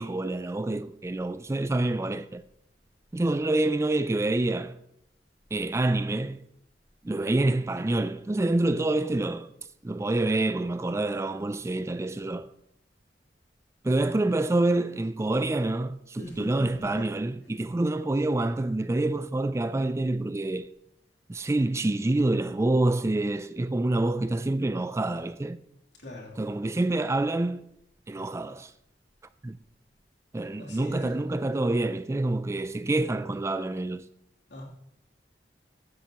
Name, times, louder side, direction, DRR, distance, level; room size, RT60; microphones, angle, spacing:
voice 1, 0.0-2.4 3.1-4.8 5.5-6.4 7.0-9.5 9.8-12.5 13.8-20.7 21.3-25.6 26.4-27.7 28.1-28.7 29.4-29.6 30.3-34.1, right 2 dB, 15° right, 0.3 m, -27 dB
voice 2, 16.2-17.1 26.0-26.4 30.5-31.4 34.5-34.6, left 1 dB, 85° left, 3.0 m, -41 dB
15.5 x 11.5 x 2.9 m
head